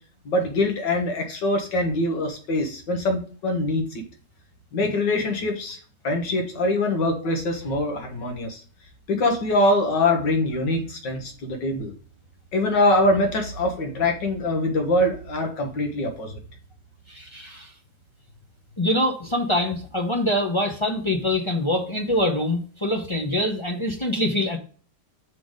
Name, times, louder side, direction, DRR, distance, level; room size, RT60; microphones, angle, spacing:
voice 1, 0.3-4.0 4.7-5.8 6.0-8.6 9.1-11.9 12.5-16.4, left 1 dB, 85° left, 3 dB, 2.1 m, -23 dB
voice 2, 17.1-17.7 18.8-24.6, left 1 dB, 35° left, 0 dB, 0.4 m, -24 dB
5.9 x 4.0 x 4.9 m, 0.40 s
omnidirectional pair, 1.9 m